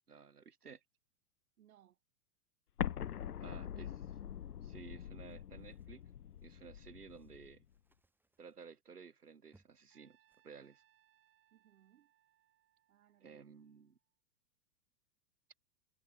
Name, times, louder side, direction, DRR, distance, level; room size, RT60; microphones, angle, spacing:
voice 1, 0.1-0.8 3.4-4.1 4.6-6.0 6.4-7.6 8.4-10.2 10.4-10.8 13.2-14.0, right 5 dB, 85° right, 1.5 m, -55 dB
voice 2, 1.6-2.0 2.9-3.6 11.5-12.1 12.9-13.4, right 11 dB, 65° right, 1.2 m, -68 dB
Explosion, 2.8-7.6, left 9 dB, 90° left, 0.5 m, -43 dB
sound 1, 5.2-6.6 7.0-9.9 10.2-10.8 11.2-11.4, right 2 dB, 5° right, 1.7 m, -74 dB
Trumpet, 9.9-14.1, right 12 dB, 30° right, 4.8 m, -74 dB
figure-of-eight pair, 100°, 45 cm